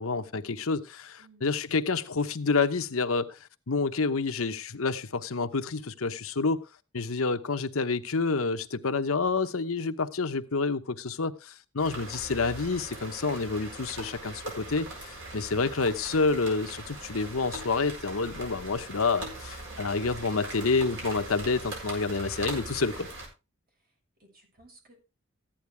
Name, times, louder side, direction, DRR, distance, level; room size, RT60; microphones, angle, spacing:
voice 1, 0.0-3.4 3.7-6.6 6.9-23.1, left 4 dB, 75° left, 0.9 m, -28 dB
voice 2, 1.2-1.5 24.2-25.0, right 3 dB, 45° right, 6.6 m, -59 dB
sound 1, 11.8-23.3, right 2 dB, 65° right, 7.3 m, -41 dB
15.0 x 10.0 x 3.4 m
head